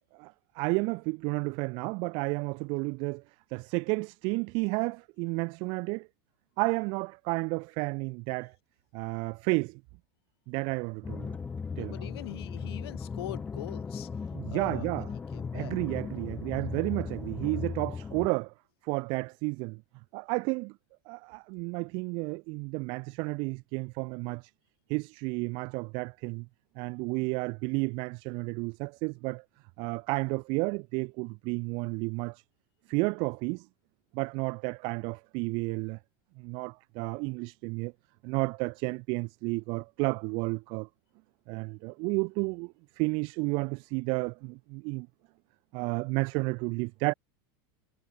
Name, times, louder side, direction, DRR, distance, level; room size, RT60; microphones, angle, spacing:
voice 1, 0.1-3.2 3.5-6.1 6.6-8.5 8.9-9.8 10.5-11.4 11.8-11.9 14.3-15.1 15.5-18.5 18.8-19.8 20.1-20.7 21.1-24.5 24.9-26.5 26.8-29.4 29.8-32.4 32.9-33.7 34.1-36.0 36.4-37.9 38.2-40.9 41.5-45.1 45.7-47.1, right 30 dB, 40° right, 0.5 m, -32 dB
sound 1, 11.0-18.3, left 5 dB, 10° left, 0.6 m, -37 dB
voice 2, 11.7-14.1 14.5-15.8, left 15 dB, 80° left, 3.5 m, -43 dB
supercardioid pair, 165°, 13 cm